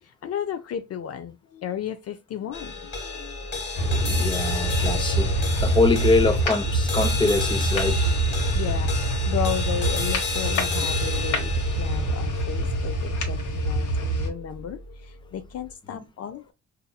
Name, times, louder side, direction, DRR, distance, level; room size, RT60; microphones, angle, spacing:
voice 1, 0.0-4.3 4.9-5.1 8.5-16.5, left 9 dB, 55° left, 0.4 m, -34 dB
sound 1, 2.5-15.0, left 4 dB, 40° left, 1.5 m, -32 dB
sound 2, 3.7-14.3, right 1 dB, 85° left, 1.1 m, -25 dB
voice 2, 3.8-5.3 5.6-8.1, left 2 dB, 15° left, 0.7 m, -24 dB
4.1 x 2.6 x 2.2 m
cardioid pair, 90°, 30 cm